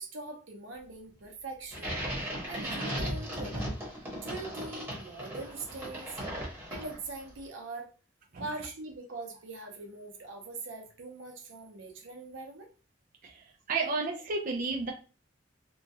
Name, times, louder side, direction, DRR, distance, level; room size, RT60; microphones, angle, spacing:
voice 1, 0.0-3.7 4.2-6.2 6.7-7.9 8.4-12.7, right 3 dB, 85° right, 2 dB, 0.8 m, -42 dB
sound 1, 1.7-7.2, equal, 10° right, 1.1 m, -37 dB
voice 2, 13.2-14.9, right 3 dB, 45° right, 1 dB, 0.5 m, -32 dB
2.9 x 2.3 x 2.8 m, 0.35 s
head